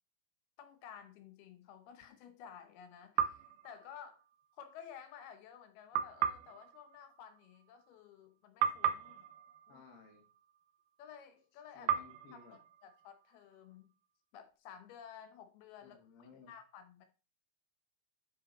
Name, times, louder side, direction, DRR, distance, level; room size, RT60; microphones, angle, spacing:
voice 1, 0.6-4.2 4.6-9.3 9.7-9.8 11.0-11.9 12.3-13.9 14.3-16.0 16.3-17.1, left 8 dB, 75° left, 8 dB, 2.5 m, -54 dB
sound 1, 3.2-4.5 5.9-8.3 8.6-10.9 11.9-13.7, right 9 dB, 80° right, 2.3 m, -38 dB
voice 2, 9.7-10.2 11.7-12.6 15.8-16.5, left 5 dB, 55° left, 2 dB, 1.0 m, -57 dB
9.8 x 5.7 x 4.2 m, 0.33 s
omnidirectional pair, 5.0 m